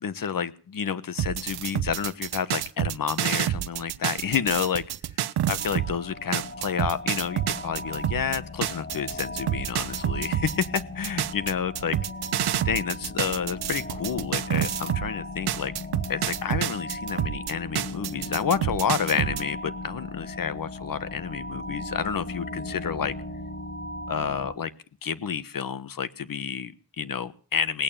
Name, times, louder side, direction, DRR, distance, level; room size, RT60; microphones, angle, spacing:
voice 1, 0.0-4.8 5.5-12.0 12.6-15.7 16.1-23.1 24.1-24.7 25.0-27.8, left 7 dB, 60° left, 17 dB, 1.3 m, -29 dB
sound 1, 1.2-6.0 6.3-15.1 15.5-19.4, right 11 dB, 80° right, 0.7 m, -28 dB
sound 2, 5.6-24.5, left 2 dB, 30° left, 3.7 m, -37 dB
18.5 x 8.8 x 8.8 m, 0.41 s
cardioid pair, 55°, 38 cm